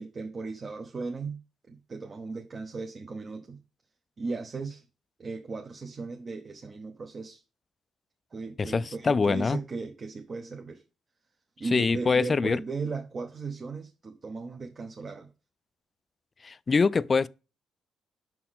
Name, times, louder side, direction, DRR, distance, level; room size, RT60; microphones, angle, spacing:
voice 1, 0.0-1.4 1.7-3.6 4.2-4.8 5.2-7.4 8.3-10.8 11.6-15.3, right 4 dB, 40° right, 0.9 m, -36 dB
voice 2, 8.6-9.6 11.7-12.6 16.4-17.3, left 4 dB, 35° left, 0.3 m, -24 dB
6.3 x 4.6 x 3.6 m
cardioid pair, 90°, 0 cm